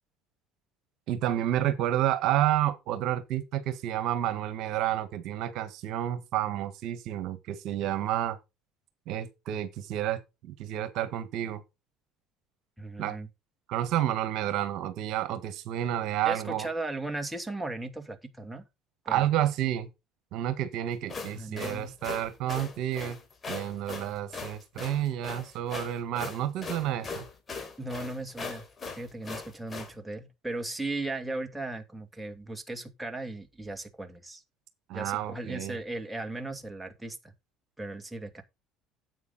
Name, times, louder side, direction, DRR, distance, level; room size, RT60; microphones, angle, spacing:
voice 1, 1.1-8.4 9.1-11.6 13.0-13.2 13.7-16.7 19.1-19.9 20.3-23.2 23.5-27.3 34.9-35.8, right 12 dB, 65° right, 1.6 m, -30 dB
voice 2, 12.8-13.3 16.3-18.6 19.1-19.2 21.3-21.9 27.8-28.7 29.0-34.4 34.9-37.3 37.8-38.4, right 2 dB, 10° right, 2.3 m, -37 dB
sound 1, 20.9-29.9, left 4 dB, 30° left, 3.3 m, -39 dB
9.4 x 8.3 x 4.1 m
hypercardioid pair, 75°, 0 cm